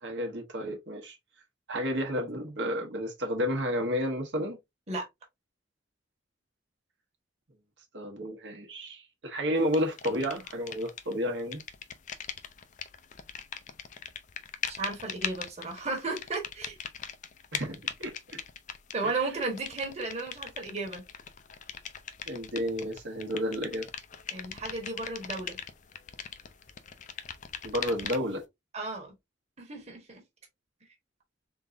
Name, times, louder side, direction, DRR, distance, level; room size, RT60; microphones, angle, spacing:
voice 1, 0.0-1.2 1.7-4.6 7.9-11.6 17.5-18.4 19.0-19.2 22.3-23.9 27.6-28.4, equal, 70° right, 1.2 m, -31 dB
sound 1, 9.7-11.1 11.4-28.4, left 8 dB, 40° left, 0.5 m, -41 dB
voice 2, 14.7-16.8 18.9-21.0 24.3-25.6 28.7-29.1 29.6-30.2, right 3 dB, 35° right, 1.3 m, -34 dB
3.8 x 3.7 x 2.6 m
head